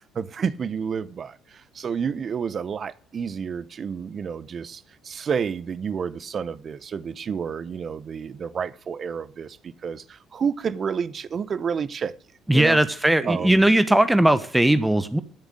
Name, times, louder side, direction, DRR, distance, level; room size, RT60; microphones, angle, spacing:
voice 1, 0.1-12.1 12.5-12.8 13.2-13.7, right 6 dB, 45° right, 0.9 m, -30 dB
voice 2, 12.5-15.2, right 1 dB, 10° right, 1.2 m, -19 dB
13.5 x 7.2 x 7.8 m
hypercardioid pair, 55°, 0 cm